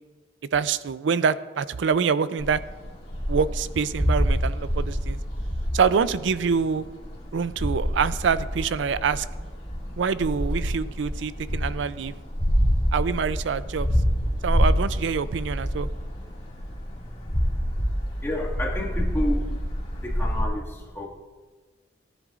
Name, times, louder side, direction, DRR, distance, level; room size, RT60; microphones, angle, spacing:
voice 1, 0.5-2.6 3.3-5.2 5.7-6.8 7.3-9.3 10.0-12.1 12.9-13.9 14.4-15.9, right 6 dB, 85° right, 15 dB, 0.4 m, -25 dB
sound 1, 2.4-20.4, equal, 35° left, 2.1 m, -27 dB
voice 2, 18.2-19.5 20.0-21.1, left 1 dB, 15° left, -4 dB, 1.9 m, -30 dB
18.5 x 10.0 x 2.5 m, 1.4 s
head